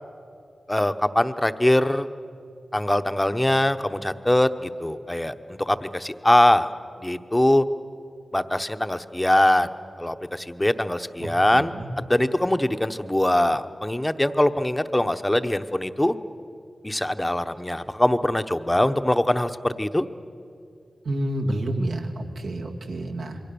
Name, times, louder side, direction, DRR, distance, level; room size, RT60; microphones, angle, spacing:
voice 1, 0.7-2.1 2.7-6.7 7.0-7.6 8.3-9.7 10.0-11.7 12.1-16.1 16.8-20.1, left 1 dB, 15° left, 9 dB, 0.9 m, -22 dB
voice 2, 11.2-11.9 21.0-23.4, right 1 dB, 85° right, 0 dB, 2.4 m, -29 dB
27.5 x 23.0 x 7.0 m, 2.5 s
wide cardioid pair, 70°, 0 cm